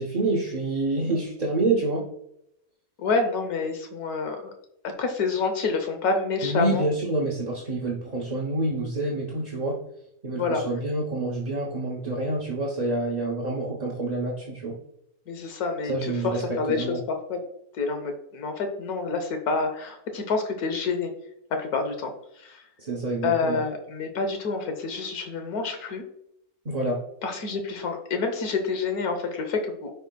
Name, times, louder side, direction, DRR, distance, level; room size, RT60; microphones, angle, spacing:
voice 1, 0.0-2.1 6.4-9.8 10.2-14.8 15.9-17.0 22.8-23.6 26.6-27.0, right 2 dB, 35° right, -2 dB, 0.8 m, -27 dB
voice 2, 3.0-4.4 5.0-6.8 10.3-10.6 15.3-15.9 16.2-17.4 17.8-21.1 21.6-22.6 23.2-26.0 27.2-29.9, left 4 dB, 80° left, 6 dB, 1.5 m, -28 dB
9.2 x 5.4 x 2.3 m, 0.77 s
omnidirectional pair, 1.6 m